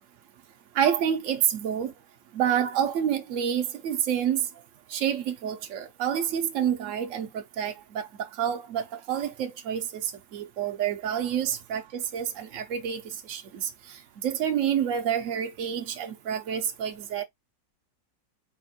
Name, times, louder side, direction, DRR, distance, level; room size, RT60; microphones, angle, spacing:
voice 1, 0.7-1.9 2.3-4.5 4.9-13.0 13.3-17.2, right 9 dB, 75° right, 0.7 m, -28 dB
4.3 x 2.2 x 4.1 m
omnidirectional pair, 2.0 m